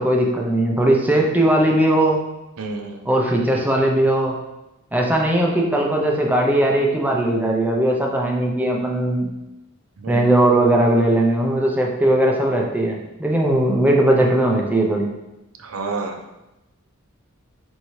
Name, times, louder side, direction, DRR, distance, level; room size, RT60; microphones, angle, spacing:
voice 1, 0.0-2.2 3.0-4.3 4.9-9.3 10.1-15.1, right 1 dB, 10° right, 0 dB, 0.5 m, -18 dB
voice 2, 2.6-3.1 10.0-10.2 15.6-16.2, right 3 dB, 75° right, 4 dB, 0.5 m, -29 dB
4.5 x 2.7 x 3.1 m, 0.96 s
head